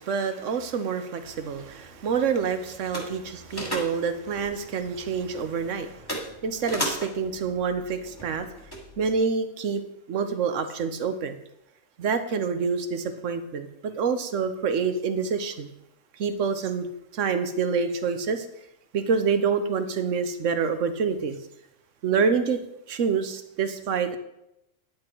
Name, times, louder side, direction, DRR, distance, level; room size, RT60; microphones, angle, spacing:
voice 1, 0.0-6.1 6.4-8.5 9.0-9.8 10.1-11.4 12.0-15.7 16.2-16.9 17.1-18.5 18.9-21.4 22.0-22.6 22.9-24.2, right 5 dB, 70° right, 9 dB, 1.3 m, -27 dB
sound 1, 1.2-9.2, equal, 15° left, 2.2 m, -38 dB
10.0 x 8.7 x 4.5 m, 0.84 s
omnidirectional pair, 1.3 m